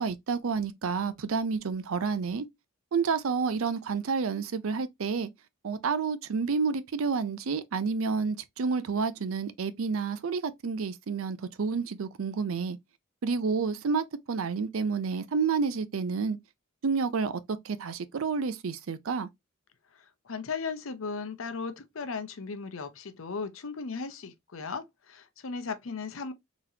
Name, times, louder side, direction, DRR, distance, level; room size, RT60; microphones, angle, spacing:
voice 1, 0.0-2.5 2.9-5.3 5.6-12.8 13.2-16.4 16.8-19.3, right 5 dB, 80° right, 0.5 m, -29 dB
voice 2, 19.9-26.3, left 4 dB, 75° left, 0.7 m, -37 dB
4.0 x 3.0 x 2.7 m
head